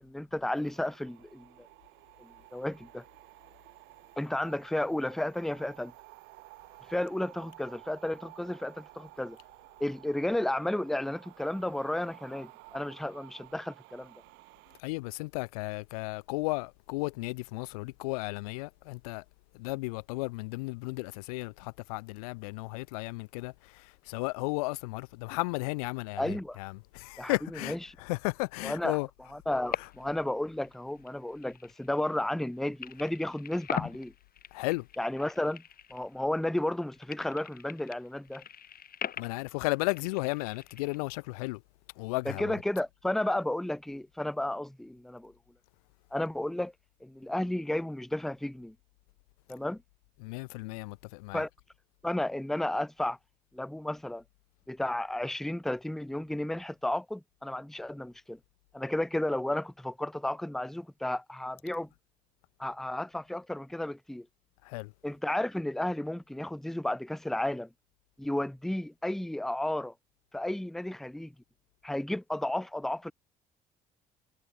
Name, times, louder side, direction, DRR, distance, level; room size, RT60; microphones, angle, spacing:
voice 1, 0.0-1.7 2.2-3.0 4.2-5.9 6.9-9.4 9.8-14.1 26.2-26.6 27.2-28.0 28.6-29.0 29.3-34.1 35.0-35.6 35.9-38.4 42.2-45.3 46.1-46.7 47.0-48.7 49.5-49.8 51.3-51.5 52.0-53.2 53.5-54.2 54.7-58.4 58.7-61.9 62.6-64.3 65.0-67.7 68.2-69.9 70.3-71.3 71.8-73.1, left 1 dB, ahead, 0.6 m, -33 dB
sound 1, 0.5-14.8, right 24 dB, 75° right, 3.3 m, -54 dB
voice 2, 14.8-19.2 19.6-27.7 28.0-29.1 34.5-34.9 39.2-41.6 42.0-42.5 50.2-51.4 64.6-64.9, left 25 dB, 85° left, 0.7 m, -34 dB
sound 2, 29.5-30.3 30.5-32.5 32.8-36.4 36.7-41.0, left 8 dB, 55° left, 5.6 m, -42 dB
hypercardioid pair, 50°, 19 cm